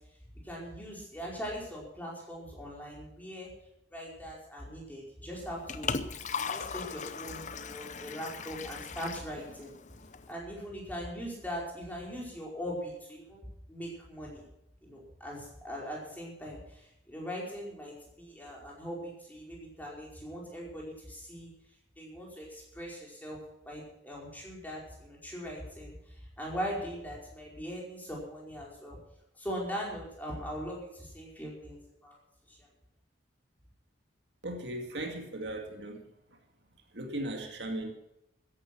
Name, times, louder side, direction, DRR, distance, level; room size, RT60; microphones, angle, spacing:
voice 1, 0.4-3.5 3.9-5.9 6.3-9.7 10.3-14.4 14.8-21.5 22.0-29.0 29.3-32.2 32.5-32.7, equal, 10° left, -3 dB, 4.9 m, -41 dB
Liquid, 5.3-10.3, left 5 dB, 40° left, 0.7 m, -38 dB
voice 2, 34.4-36.0 36.9-37.9, right 1 dB, 65° right, 3 dB, 2.2 m, -37 dB
14.0 x 11.0 x 6.0 m, 0.82 s
head